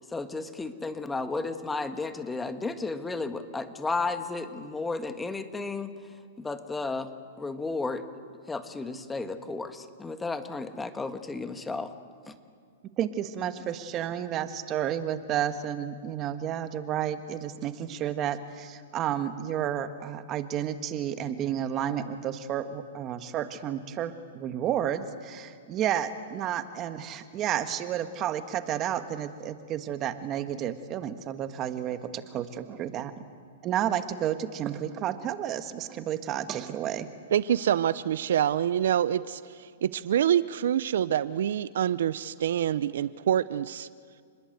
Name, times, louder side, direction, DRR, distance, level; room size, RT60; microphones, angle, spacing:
voice 1, 0.1-5.9 6.4-7.1 7.4-8.0 8.5-11.9 12.3-12.4, left 3 dB, 10° left, 8 dB, 1.6 m, -33 dB
voice 2, 13.0-33.1 33.6-37.1, right 10 dB, 30° right, 10 dB, 1.6 m, -31 dB
voice 3, 37.3-43.9, right 10 dB, 70° right, 17 dB, 0.7 m, -26 dB
29.5 x 21.0 x 8.1 m, 2.2 s
hypercardioid pair, 140°, 0 cm